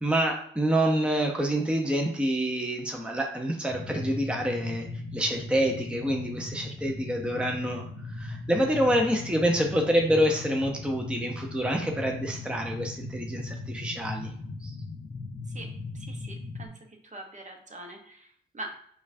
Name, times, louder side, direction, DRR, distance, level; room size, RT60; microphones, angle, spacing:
voice 1, 0.0-4.9 5.1-14.3 14.6-14.7, equal, 5° right, 1 dB, 0.7 m, -27 dB
sound 1, 3.7-16.7, left 2 dB, 40° left, 0.8 m, -38 dB
voice 2, 15.5-16.7 17.1-18.8, right 2 dB, 35° right, 3 dB, 0.8 m, -43 dB
5.1 x 2.4 x 2.6 m, 0.64 s
cardioid pair, 60°, 21 cm